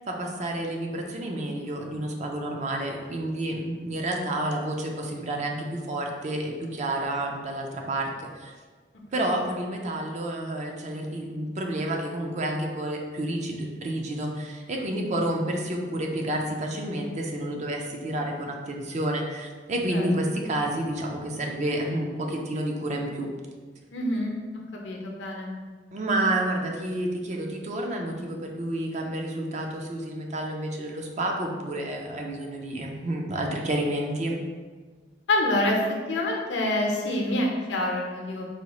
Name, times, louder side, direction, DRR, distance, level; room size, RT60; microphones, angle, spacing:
voice 1, 0.1-8.5 9.1-23.3 25.9-34.4, right 1 dB, 40° right, 1 dB, 0.4 m, -30 dB
voice 2, 23.9-24.3 24.7-25.5 35.3-35.8 36.1-38.5, left 1 dB, 80° left, 0 dB, 0.7 m, -26 dB
4.1 x 2.3 x 2.9 m, 1.4 s
head